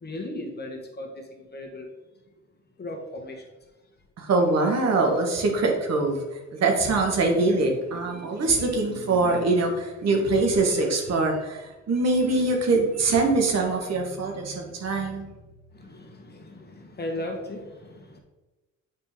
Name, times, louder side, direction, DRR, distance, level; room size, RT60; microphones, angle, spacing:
voice 1, 0.0-1.9 2.8-3.4 15.7-18.2, left 1 dB, 35° left, 2 dB, 1.3 m, -37 dB
voice 2, 4.2-6.2 6.5-15.3, right 3 dB, 60° right, 2 dB, 1.5 m, -23 dB
7.7 x 4.4 x 3.6 m, 1.1 s
cardioid pair, 90°, 30 cm